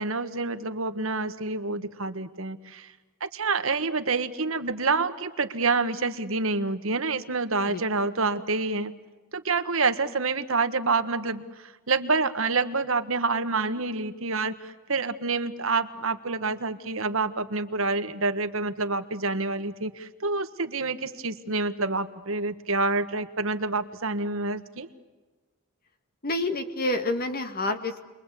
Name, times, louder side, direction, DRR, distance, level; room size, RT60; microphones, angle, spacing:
voice 1, 0.0-2.9 3.2-8.9 9.3-24.9, right 3 dB, 75° right, 9 dB, 1.5 m, -27 dB
voice 2, 26.2-28.0, left 2 dB, 45° left, 7 dB, 2.1 m, -28 dB
30.0 x 23.0 x 8.4 m, 1.2 s
head